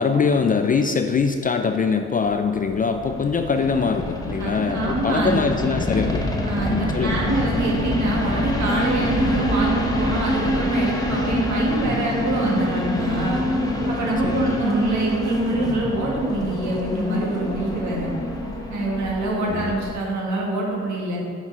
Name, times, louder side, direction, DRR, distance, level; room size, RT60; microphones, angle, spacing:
voice 1, 0.0-6.3 6.7-7.2 14.2-14.6 19.5-19.7, left 5 dB, 30° left, 6 dB, 0.4 m, -23 dB
sound 1, 2.3-19.9, left 1 dB, 10° left, 1.0 m, -25 dB
voice 2, 4.4-5.5 6.4-13.4 13.9-18.1 18.7-21.2, right 2 dB, 70° right, -3 dB, 1.7 m, -25 dB
6.0 x 4.6 x 5.3 m, 2.2 s
cardioid pair, 90°, 30 cm